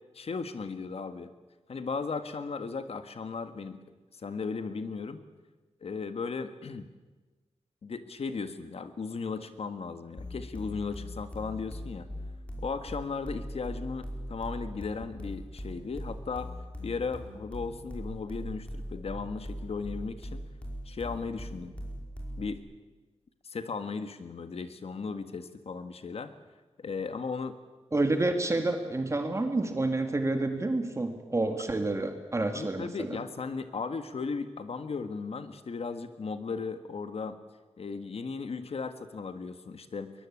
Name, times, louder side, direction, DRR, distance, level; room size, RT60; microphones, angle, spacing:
voice 1, 0.1-1.3 1.7-3.8 4.2-5.2 5.8-6.9 7.8-12.1 12.6-16.5 16.8-20.4 20.9-21.7 22.4-22.6 23.4-26.3 26.8-27.6 32.5-37.4 37.8-40.1, left 4 dB, 60° left, 9 dB, 1.7 m, -36 dB
sound 1, 10.2-22.5, equal, 10° left, 5.1 m, -40 dB
voice 2, 27.9-33.2, right 2 dB, 25° right, 6 dB, 2.0 m, -29 dB
22.0 x 21.5 x 8.7 m, 1.3 s
wide cardioid pair, 140°, 11 cm